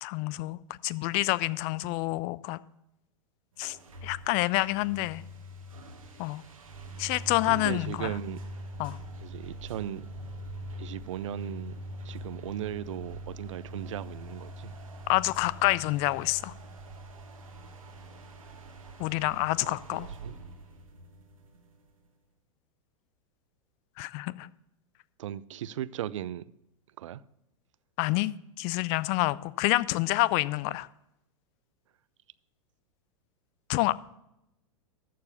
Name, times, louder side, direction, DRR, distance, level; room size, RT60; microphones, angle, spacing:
voice 1, 0.0-2.6 3.6-3.8 4.0-5.2 6.2-6.4 7.0-8.1 8.8-9.0 15.1-16.5 19.0-20.1 24.0-24.5 28.0-28.3 28.6-30.9 33.7-33.9, left 19 dB, 40° left, 0.4 m, -28 dB
sound 1, 3.6-22.1, right 1 dB, 85° right, 1.5 m, -44 dB
voice 2, 7.5-8.4 9.2-10.1 10.8-11.8 12.0-14.7 19.6-20.3 25.2-26.5 27.0-27.2, right 11 dB, 65° right, 0.5 m, -37 dB
13.5 x 4.7 x 7.0 m
figure-of-eight pair, 95°, 17 cm